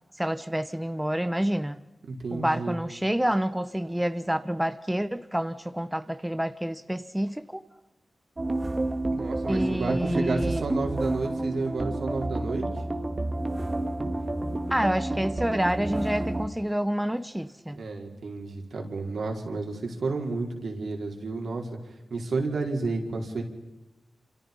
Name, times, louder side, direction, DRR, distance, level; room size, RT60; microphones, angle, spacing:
voice 1, 0.2-1.8 2.3-7.6 9.5-10.6 14.7-17.8, equal, 5° right, 1.0 m, -28 dB
voice 2, 2.0-2.8 9.1-12.7 17.7-21.7 22.1-23.4, right 3 dB, 70° right, 4.8 m, -31 dB
sound 1, 8.4-16.5, right 2 dB, 30° right, 2.0 m, -30 dB
28.0 x 27.0 x 5.5 m
cardioid pair, 75°, 0 cm